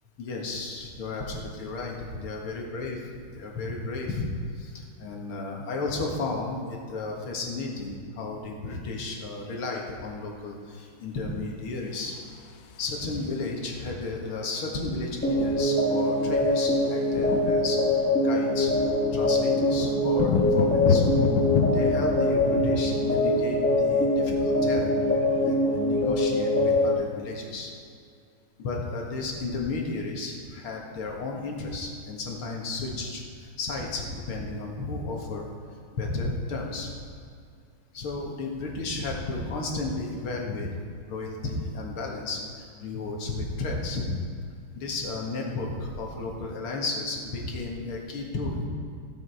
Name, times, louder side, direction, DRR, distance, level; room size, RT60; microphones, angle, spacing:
voice 1, 0.2-3.0 3.3-4.3 4.5-12.2 12.8-17.8 18.2-18.7 19.1-21.1 21.7-25.0 25.4-27.7 28.6-35.5 35.9-36.9 37.9-40.8 41.1-44.1 44.8-48.7, left 3 dB, 90° left, -1 dB, 2.5 m, -33 dB
sound 1, 12.0-13.5 14.8-14.9 15.1-15.3 15.6-27.7, left 6 dB, 70° left, 1.5 m, -31 dB
sound 2, 15.2-26.9, left 1 dB, 10° left, 0.9 m, -24 dB
15.5 x 8.2 x 4.7 m, 2.3 s
omnidirectional pair, 2.3 m